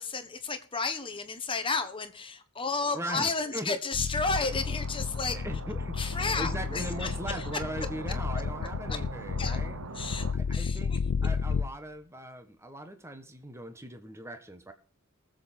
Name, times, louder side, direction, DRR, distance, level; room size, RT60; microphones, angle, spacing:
voice 1, 0.0-5.4 5.9-7.5 8.9-9.0 9.4-9.6 9.9-11.0, left 4 dB, 25° left, 8 dB, 1.4 m, -32 dB
voice 2, 2.9-3.8 5.3-9.8 10.3-11.0 11.2-14.7, right 1 dB, 10° right, 7 dB, 1.3 m, -39 dB
sound 1, 3.9-11.7, left 5 dB, 80° left, 0.5 m, -32 dB
sound 2, 4.2-10.3, right 4 dB, 70° right, 0.9 m, -42 dB
19.5 x 7.8 x 4.3 m, 0.40 s
head